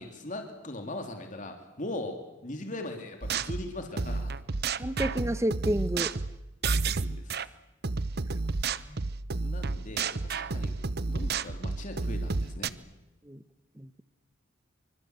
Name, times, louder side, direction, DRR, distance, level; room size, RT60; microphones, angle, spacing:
voice 1, 0.0-4.3 7.0-7.4 9.4-12.7, left 1 dB, 40° left, 4 dB, 3.1 m, -40 dB
sound 1, 3.2-7.5 7.8-12.7, right 4 dB, 55° right, 0.9 m, -31 dB
voice 2, 4.8-6.1 8.9-9.1 13.2-13.4 13.8-14.0, right 1 dB, 15° right, 14 dB, 1.1 m, -30 dB
27.0 x 25.0 x 8.2 m, 0.99 s
head